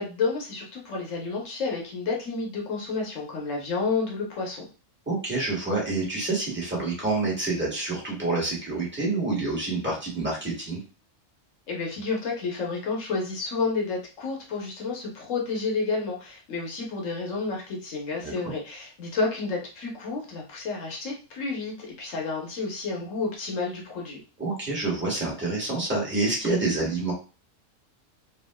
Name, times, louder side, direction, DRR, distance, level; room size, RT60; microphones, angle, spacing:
voice 1, 0.0-4.7 11.7-24.2, left 4 dB, 80° left, -1 dB, 1.3 m, -30 dB
voice 2, 5.1-10.8 18.2-18.3 24.4-27.1, right 3 dB, 10° right, -5 dB, 1.2 m, -27 dB
3.4 x 2.4 x 2.2 m, 0.35 s
omnidirectional pair, 1.3 m